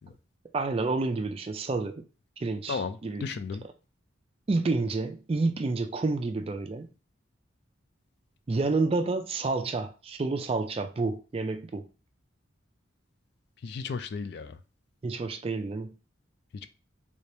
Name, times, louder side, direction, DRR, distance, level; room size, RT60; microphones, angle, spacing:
voice 1, 0.5-2.0 2.4-3.3 4.5-6.9 8.5-11.9 15.0-16.0, right 3 dB, 30° right, 0.3 m, -29 dB
voice 2, 2.7-3.6 13.6-14.6 16.6-16.7, left 5 dB, 55° left, 0.3 m, -34 dB
3.3 x 2.7 x 3.2 m
head